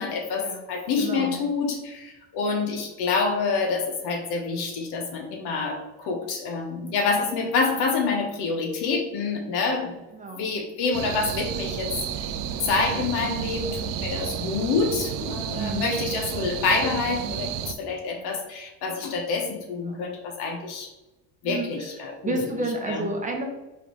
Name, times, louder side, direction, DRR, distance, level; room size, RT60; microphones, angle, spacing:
voice 1, 0.0-10.0 10.3-11.9 12.6-20.9 21.4-22.3 22.9-23.0, left 4 dB, 65° left, 3 dB, 1.1 m, -27 dB
voice 2, 1.0-1.4 10.1-10.5 14.0-14.4 15.5-16.0 18.2-18.3 19.8-20.1 21.4-23.5, right 2 dB, 20° right, 1 dB, 0.7 m, -32 dB
sound 1, 10.9-17.7, right 9 dB, 55° right, 0.5 m, -31 dB
4.8 x 3.4 x 3.1 m, 1.1 s
cardioid pair, 120°, 41 cm